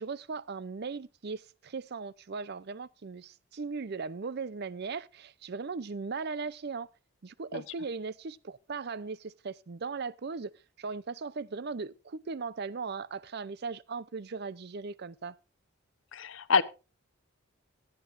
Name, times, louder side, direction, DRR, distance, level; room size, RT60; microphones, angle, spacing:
voice 1, 0.0-6.9 7.2-15.3, right 4 dB, 50° right, 0.5 m, -38 dB
voice 2, 16.1-16.6, left 5 dB, 65° left, 0.8 m, -26 dB
16.0 x 11.0 x 2.5 m
head